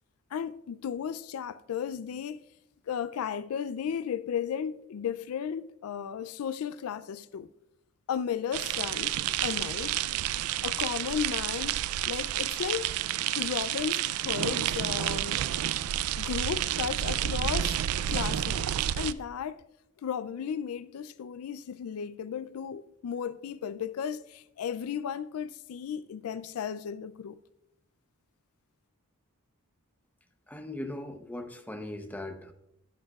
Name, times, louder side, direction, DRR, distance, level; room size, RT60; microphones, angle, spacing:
voice 1, 0.3-2.4 2.9-7.5 8.1-10.0 10.6-12.9 13.4-15.4 16.2-17.8 18.1-19.6 20.0-27.4, left 8 dB, 75° left, 0.4 m, -34 dB
sound 1, 8.5-19.1, right 11 dB, 75° right, 0.3 m, -30 dB
voice 2, 30.5-32.5, left 1 dB, 5° left, 0.7 m, -39 dB
12.5 x 8.5 x 2.3 m
head